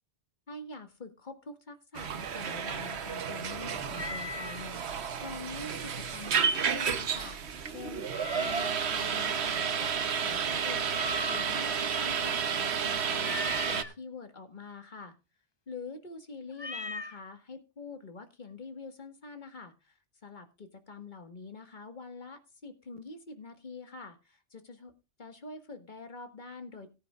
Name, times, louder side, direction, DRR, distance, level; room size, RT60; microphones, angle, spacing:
voice 1, 0.5-7.4 7.6-8.1 8.3-10.9 11.3-15.2 15.7-24.9 25.2-26.9, left 4 dB, 45° left, 7 dB, 1.9 m, -45 dB
sound 1, 1.9-13.8, right 7 dB, 70° right, 1.2 m, -31 dB
Meow, 3.9-4.6 8.1-8.9 10.9-11.7 13.2-13.9 16.5-17.2, left 4 dB, 25° left, 0.9 m, -39 dB
17.5 x 9.8 x 2.4 m, 0.28 s
omnidirectional pair, 1.2 m